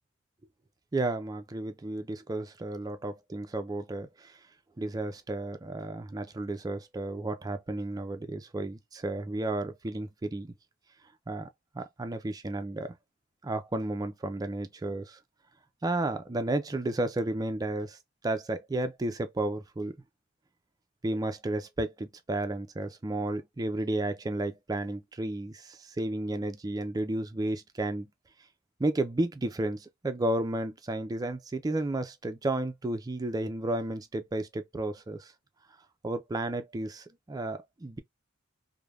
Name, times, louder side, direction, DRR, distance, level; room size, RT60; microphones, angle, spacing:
voice 1, 0.9-4.4 4.8-10.5 11.3-11.5 11.7-12.9 13.4-15.2 15.8-18.0 18.2-20.0 21.0-28.1 28.8-35.3 36.0-38.0, right 2 dB, 15° right, 0.3 m, -32 dB
3.2 x 2.1 x 2.3 m
head